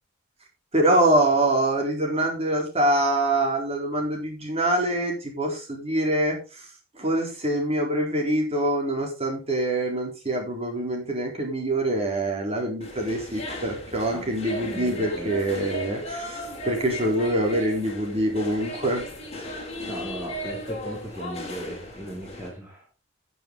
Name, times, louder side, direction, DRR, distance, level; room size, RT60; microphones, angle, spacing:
voice 1, 0.7-6.6 7.0-19.0, right 1 dB, 30° right, 1 dB, 4.1 m, -25 dB
sound 1, 12.8-22.5, equal, 35° left, 4.2 m, -36 dB
voice 2, 14.5-15.3 19.9-22.8, equal, 10° right, -3 dB, 3.2 m, -37 dB
13.5 x 7.0 x 4.0 m, 0.31 s
head